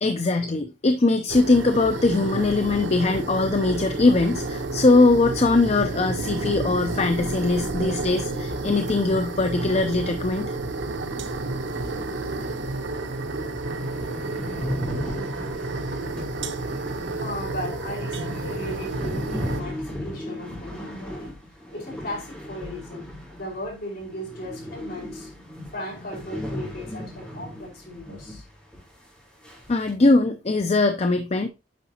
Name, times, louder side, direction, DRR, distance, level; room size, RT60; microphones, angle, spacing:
voice 1, 0.0-10.5 29.7-31.5, left 3 dB, 35° left, 0.6 m, -21 dB
sound 1, 1.3-19.6, right 2 dB, 80° right, 1.0 m, -30 dB
voice 2, 7.7-8.5 15.1-15.3 17.1-21.4 21.7-23.1 23.3-25.3 25.7-28.5, left 1 dB, 55° left, 5.2 m, -36 dB
sound 2, 12.8-12.9 13.2-13.3 13.5-23.7 24.0-28.4 28.7-28.8 29.4-29.9, left 1 dB, 5° left, 4.0 m, -36 dB
9.4 x 5.9 x 2.9 m
head